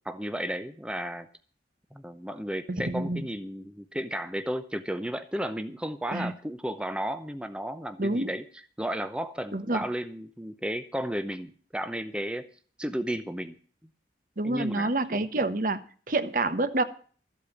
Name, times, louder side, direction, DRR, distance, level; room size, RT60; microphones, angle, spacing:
voice 1, 0.0-1.3 1.9-8.4 8.8-12.5 12.8-13.6 14.4-14.9, equal, 5° right, 9 dB, 0.7 m, -33 dB
voice 2, 2.7-3.3 6.1-6.3 8.0-8.3 9.5-9.8 14.4-15.8 16.1-16.8, right 2 dB, 50° right, 11 dB, 1.1 m, -27 dB
14.0 x 8.4 x 7.1 m, 0.43 s
head